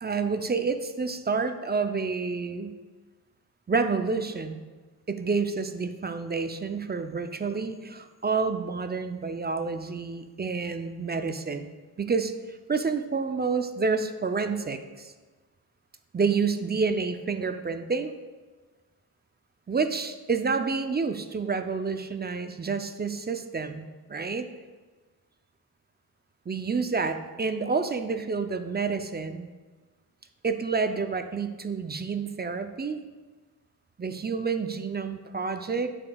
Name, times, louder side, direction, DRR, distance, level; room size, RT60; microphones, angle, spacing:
voice 1, 0.0-2.7 3.7-4.6 5.1-11.7 12.0-15.1 16.1-18.1 19.7-23.8 24.1-24.5 26.5-29.5 30.4-33.0 34.0-35.9, right 4 dB, 25° right, 8 dB, 0.4 m, -29 dB
8.6 x 6.9 x 2.3 m, 1.3 s
cardioid pair, 80°, 40 cm